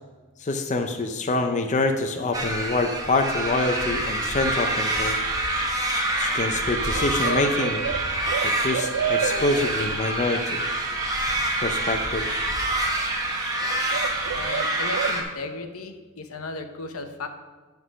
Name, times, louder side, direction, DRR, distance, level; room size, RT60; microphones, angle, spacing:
voice 1, 0.4-5.2 6.2-7.8 8.4-10.6 11.6-12.3, left 2 dB, 35° left, 5 dB, 0.5 m, -26 dB
sound 1, 2.3-15.2, right 1 dB, 15° right, 1.1 m, -27 dB
sound 2, 4.6-15.1, right 8 dB, 75° right, 0.4 m, -33 dB
voice 2, 14.3-17.3, left 3 dB, 80° left, 6 dB, 0.8 m, -35 dB
10.5 x 3.8 x 6.2 m, 1.3 s
head